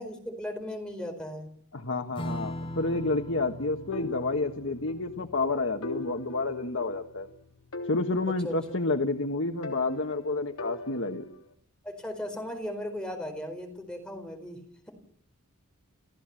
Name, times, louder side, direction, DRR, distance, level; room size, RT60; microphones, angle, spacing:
voice 1, 0.0-1.5 8.4-8.6 11.8-14.9, left 1 dB, 5° left, 3 dB, 4.5 m, -37 dB
voice 2, 1.7-7.3 7.9-11.3, left 3 dB, 60° left, 5 dB, 1.4 m, -29 dB
Strum, 2.1-9.0, left 1 dB, 25° left, 3.2 m, -42 dB
sound 1, 3.9-5.1 5.4-5.5 5.8-7.3 7.7-9.2 9.6-11.5, left 2 dB, 80° left, 3.3 m, -41 dB
29.5 x 14.5 x 7.7 m, 0.63 s
head